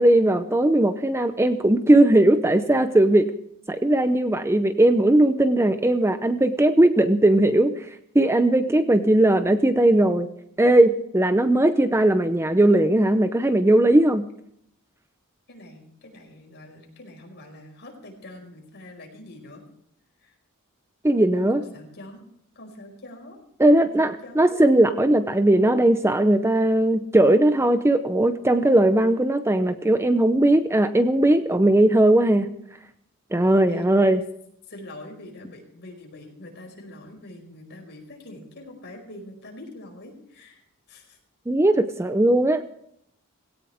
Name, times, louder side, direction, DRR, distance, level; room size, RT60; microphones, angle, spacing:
voice 1, 0.0-3.3 3.7-7.9 8.1-10.3 10.6-14.2 21.0-21.6 23.6-32.5 33.3-34.2 41.5-42.6, right 1 dB, 10° right, 10 dB, 0.6 m, -18 dB
voice 2, 15.5-19.6 20.2-20.3 21.5-22.2 22.5-23.4 23.8-24.5 33.7-33.9 34.7-40.6 40.9-41.2, left 1 dB, 55° left, 1 dB, 5.1 m, -44 dB
18.0 x 17.5 x 3.5 m, 0.71 s
head